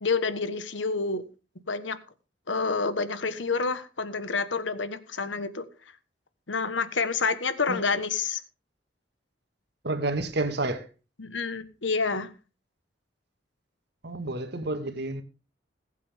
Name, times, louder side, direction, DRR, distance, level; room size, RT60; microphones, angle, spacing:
voice 1, 0.0-1.2 1.7-2.0 2.5-5.6 6.5-8.4 11.2-12.3, left 4 dB, 80° left, 1.4 m, -28 dB
voice 2, 9.8-10.9 14.0-15.2, right 2 dB, 60° right, 1.8 m, -30 dB
21.0 x 8.3 x 3.6 m
head